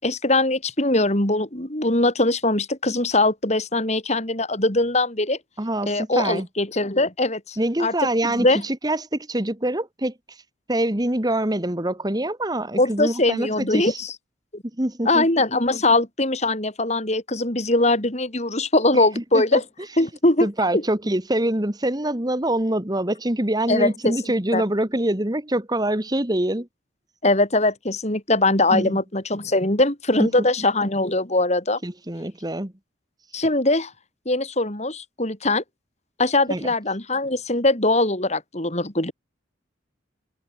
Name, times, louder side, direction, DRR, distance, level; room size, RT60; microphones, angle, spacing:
voice 1, 0.0-5.4 5.9-7.9 8.2-8.6 12.8-14.1 14.5-14.6 15.1-19.6 20.0-20.5 20.7-20.8 23.7-24.2 24.5-24.6 27.2-31.8 33.3-33.9 34.3-35.6 36.2-39.1, left 2 dB, 35° left, 3.9 m, -21 dB
voice 2, 5.6-6.5 7.6-10.4 10.7-14.0 14.8-15.3 18.9-19.6 20.4-26.7 28.7-29.0 30.2-30.3 31.8-32.7 36.5-36.7, right 1 dB, 20° right, 1.6 m, -25 dB
head